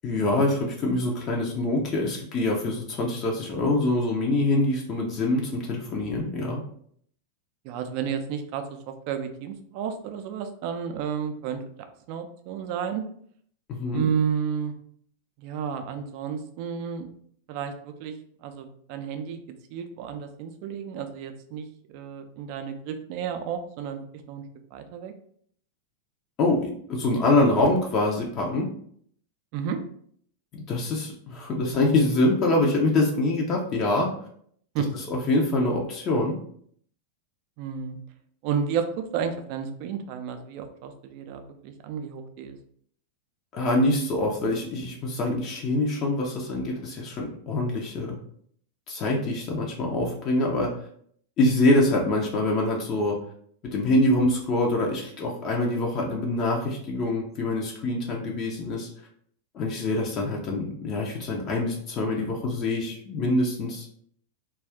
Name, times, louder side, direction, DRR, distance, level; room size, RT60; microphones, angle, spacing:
voice 1, 0.0-6.6 13.7-14.0 26.4-28.7 30.5-34.1 35.1-36.4 43.5-48.2 48.9-50.7 51.4-53.2 53.6-58.9 59.5-63.9, left 2 dB, 35° left, -1 dB, 0.5 m, -25 dB
voice 2, 7.6-11.6 12.1-13.0 13.9-14.7 15.4-17.1 17.5-18.1 18.4-19.4 19.7-21.7 21.9-24.4 24.7-25.1 29.5-29.8 34.7-34.9 37.6-38.0 38.4-38.9 39.1-42.6, right 7 dB, 45° right, 7 dB, 0.4 m, -31 dB
2.4 x 2.3 x 3.4 m, 0.63 s
figure-of-eight pair, 90°, 0 cm